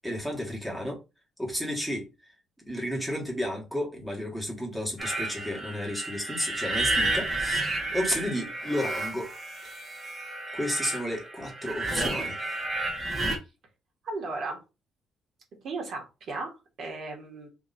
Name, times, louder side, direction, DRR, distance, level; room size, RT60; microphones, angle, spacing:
voice 1, 0.0-1.0 1.4-2.1 2.7-9.3 10.5-12.7, equal, ahead, 1.6 m, -32 dB
sound 1, 5.0-13.4, right 2 dB, 20° right, 1.3 m, -31 dB
voice 2, 14.0-14.6 15.6-16.5 16.8-17.5, right 3 dB, 55° right, 1.5 m, -35 dB
3.1 x 2.9 x 4.0 m
cardioid pair, 135°, 0 cm